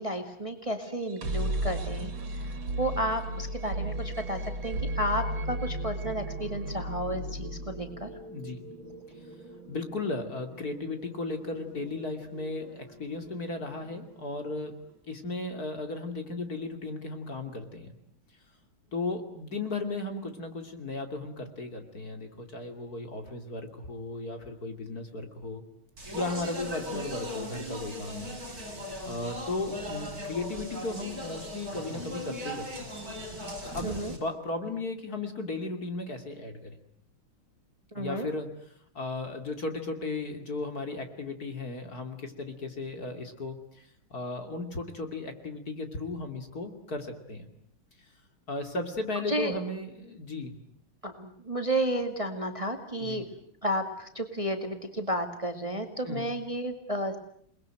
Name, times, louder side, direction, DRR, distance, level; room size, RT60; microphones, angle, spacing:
voice 1, 0.0-2.1 2.8-8.1 26.9-27.0 33.8-34.1 37.9-38.3 49.3-49.6 51.0-53.3 53.6-57.2, equal, 15° right, 6 dB, 2.1 m, -32 dB
sound 1, 0.9-14.8, right 1 dB, 65° right, 3.4 m, -36 dB
voice 2, 8.3-8.6 9.7-14.8 15.1-17.9 18.9-25.6 26.1-28.4 29.0-32.9 33.7-36.7 38.0-38.5 38.9-47.5 48.5-50.5 53.0-53.2 56.0-56.3, left 2 dB, 45° left, 6 dB, 3.2 m, -35 dB
Speech, 26.0-34.2, left 1 dB, 45° right, 5.7 m, -38 dB
29.0 x 21.0 x 9.1 m, 0.67 s
omnidirectional pair, 2.3 m